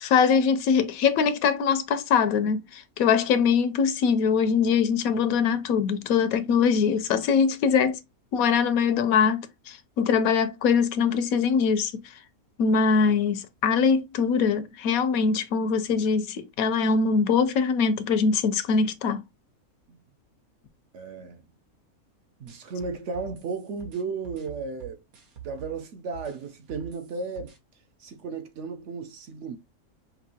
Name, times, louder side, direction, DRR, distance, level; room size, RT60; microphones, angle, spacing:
voice 1, 0.0-8.0 8.3-11.9 12.6-19.2, left 6 dB, 80° left, 1.0 m, -22 dB
voice 2, 20.9-21.4 22.4-25.0 25.4-27.5 28.0-29.6, right 4 dB, 65° right, 0.9 m, -34 dB
sound 1, 22.5-25.8 26.1-27.6, right 10 dB, 80° right, 1.5 m, -44 dB
5.4 x 2.5 x 2.7 m
omnidirectional pair, 1.5 m